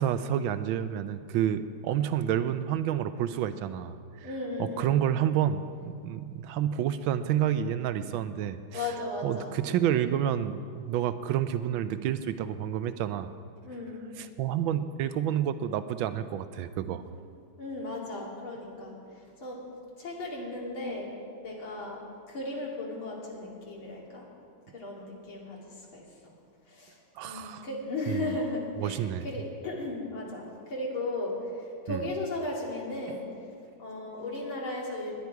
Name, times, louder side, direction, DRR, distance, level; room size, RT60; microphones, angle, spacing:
voice 1, 0.0-4.3 4.6-8.9 9.2-13.3 14.2-17.0 27.2-27.7 28.1-28.3 28.8-29.3 31.9-32.1, right 10 dB, 85° right, 12 dB, 1.4 m, -29 dB
voice 2, 4.2-4.9 8.7-9.5 13.6-14.0 17.6-18.9 19.4-19.6 20.0-21.1 21.4-22.0 22.3-24.3 24.7-26.0 26.7-26.9 27.2-33.3 33.8-35.2, left 2 dB, 85° left, -3 dB, 3.4 m, -35 dB
19.0 x 10.5 x 4.7 m, 2.3 s
omnidirectional pair, 2.2 m